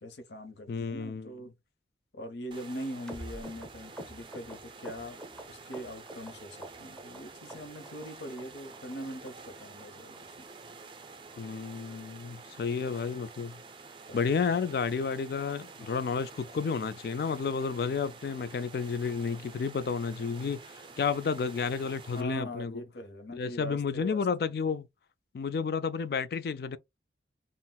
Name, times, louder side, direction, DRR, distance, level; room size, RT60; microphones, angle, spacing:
voice 1, 0.0-1.5 2.1-5.2 5.5-10.5 14.1-14.3 22.1-24.5, equal, 75° left, 0.8 m, -42 dB
voice 2, 0.7-1.3 11.4-13.6 14.1-22.8 23.3-24.9 25.3-26.8, left 5 dB, 55° left, 0.3 m, -31 dB
sound 1, 2.5-22.2, right 4 dB, 30° right, 0.4 m, -49 dB
sound 2, 3.1-6.3 6.6-7.2 7.5-8.1 8.4-8.5 8.7-9.0 9.3-9.4 9.6-9.8 10.1-10.2 10.5-10.7 11.0-11.1 11.4-11.6 11.9-12.0 12.3-12.5 12.8-12.9, right 1 dB, 5° left, 0.7 m, -45 dB
3.9 x 2.0 x 2.2 m
head